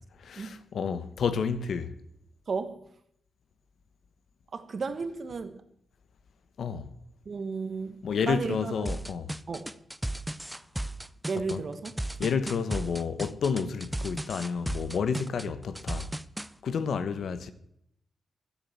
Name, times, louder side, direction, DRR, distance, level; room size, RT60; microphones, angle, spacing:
voice 1, 0.2-1.9 6.6-6.9 8.0-9.3 11.3-11.6 12.2-16.1 16.6-17.5, left 6 dB, 80° left, 1.0 m, -30 dB
voice 2, 2.5-2.8 4.5-5.5 7.2-8.9 9.5-9.7 11.3-12.0, right 4 dB, 50° right, 1.3 m, -34 dB
sound 1, 8.8-16.5, right 1 dB, 5° right, 0.5 m, -35 dB
13.0 x 8.5 x 7.3 m
wide cardioid pair, 115°, 0 cm